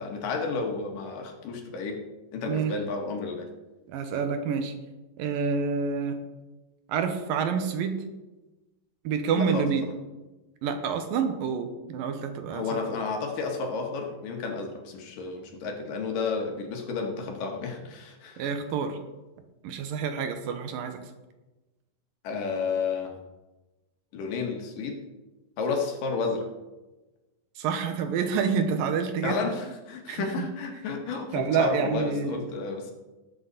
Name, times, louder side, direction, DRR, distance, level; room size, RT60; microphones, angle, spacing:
voice 1, 0.0-2.0 2.3-3.5 9.3-9.9 12.5-18.4 22.2-23.1 24.1-25.0 25.6-26.5 29.2-32.9, left 4 dB, 70° left, 2 dB, 3.2 m, -31 dB
voice 2, 3.9-4.7 5.2-6.2 6.9-8.0 9.0-9.8 10.6-12.8 18.4-19.0 19.6-21.0 27.6-29.5 30.1-30.5 31.3-32.4, right 6 dB, 80° right, 7 dB, 2.8 m, -28 dB
19.0 x 8.0 x 4.1 m, 1.1 s
omnidirectional pair, 4.1 m